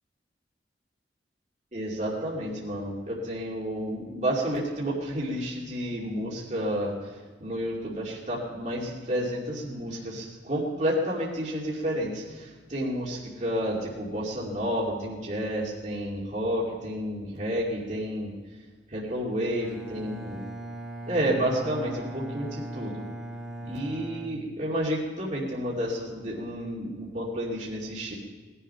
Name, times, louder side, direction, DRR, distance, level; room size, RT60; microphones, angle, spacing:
voice 1, 1.7-18.3 18.9-20.4 21.1-23.0 23.6-28.1, equal, 40° right, -5 dB, 2.5 m, -30 dB
Bowed string instrument, 19.6-25.1, right 1 dB, ahead, 2.0 m, -39 dB
19.5 x 11.5 x 5.7 m, 1.4 s
head